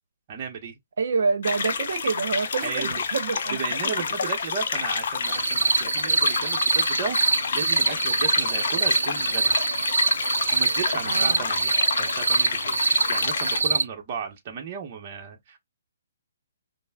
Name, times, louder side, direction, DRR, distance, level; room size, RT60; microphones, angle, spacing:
voice 1, 0.3-0.7 2.6-3.0 3.5-9.6 10.5-15.6, right 6 dB, 35° right, 0.8 m, -34 dB
voice 2, 1.0-3.6 11.0-11.4, right 4 dB, 60° right, 0.8 m, -27 dB
sound 1, 1.4-13.6, left 5 dB, 55° left, 0.6 m, -29 dB
sound 2, 5.2-13.8, right 4 dB, 80° right, 0.4 m, -24 dB
5.2 x 2.1 x 2.3 m
hypercardioid pair, 140°, 0 cm